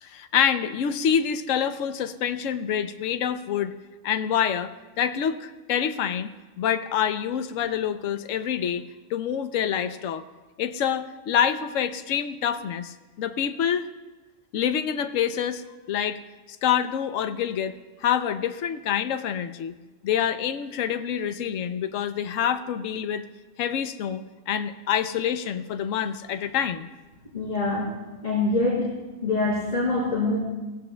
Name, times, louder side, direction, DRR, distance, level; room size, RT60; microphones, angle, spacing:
voice 1, 0.0-3.8 4.0-4.7 5.0-6.3 6.6-8.8 9.1-10.2 10.6-13.9 14.5-16.2 16.6-17.7 18.0-19.7 20.0-23.2 23.6-26.9, left 8 dB, 75° left, 10 dB, 1.0 m, -26 dB
voice 2, 27.3-27.9 28.2-28.8 29.2-30.4, left 2 dB, 35° left, -9 dB, 4.2 m, -24 dB
19.5 x 16.0 x 2.2 m, 1.2 s
omnidirectional pair, 1.4 m